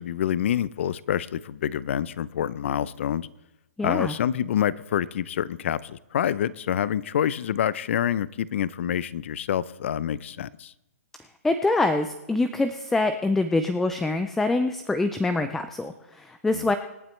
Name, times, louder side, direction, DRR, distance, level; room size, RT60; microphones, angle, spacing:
voice 1, 0.0-3.3 3.8-10.7 16.5-16.7, left 10 dB, 50° left, 0.5 m, -27 dB
voice 2, 3.8-4.1 11.4-16.8, left 2 dB, 5° left, 0.4 m, -25 dB
25.5 x 9.2 x 3.2 m
hypercardioid pair, 160°, 8 cm